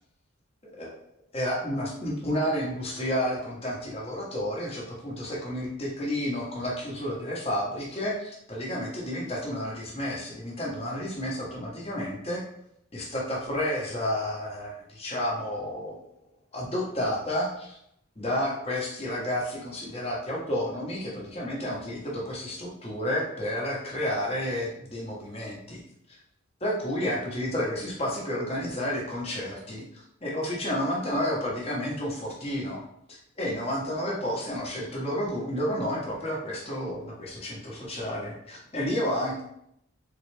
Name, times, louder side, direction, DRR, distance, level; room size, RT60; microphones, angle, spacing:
voice 1, 1.3-12.4 12.9-16.0 16.5-17.8 18.2-25.8 26.1-26.2 26.6-39.4, equal, 30° left, -3 dB, 1.0 m, -31 dB
3.8 x 3.2 x 3.3 m, 0.76 s
head